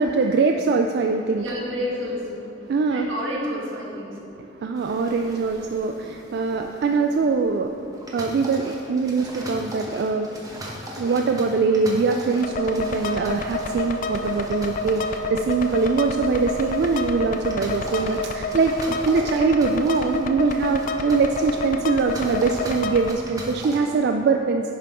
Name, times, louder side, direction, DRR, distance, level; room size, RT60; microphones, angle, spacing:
voice 1, 0.0-1.5 2.7-3.1 4.4-7.9 8.1-10.3 11.0-24.7, right 4 dB, 55° right, 4 dB, 0.3 m, -22 dB
voice 2, 1.3-2.5 2.9-4.4 20.8-21.0, equal, 85° right, -4 dB, 1.8 m, -30 dB
sound 1, 4.7-23.9, equal, 20° right, 1.0 m, -39 dB
sound 2, 12.4-23.1, left 3 dB, 45° left, 0.4 m, -29 dB
10.0 x 5.9 x 3.6 m, 2.7 s
head